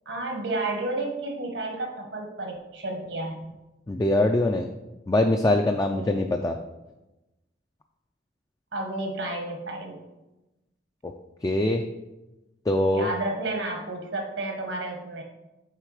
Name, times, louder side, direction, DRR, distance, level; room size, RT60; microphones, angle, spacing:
voice 1, 0.0-3.4 5.9-6.2 8.7-10.0 12.9-15.2, right 2 dB, 80° right, 2 dB, 1.3 m, -31 dB
voice 2, 3.9-4.7 5.1-6.6 11.0-11.1 11.4-11.8 12.7-13.1, left 1 dB, 20° left, 4 dB, 0.3 m, -23 dB
6.5 x 4.3 x 4.9 m, 1.0 s
head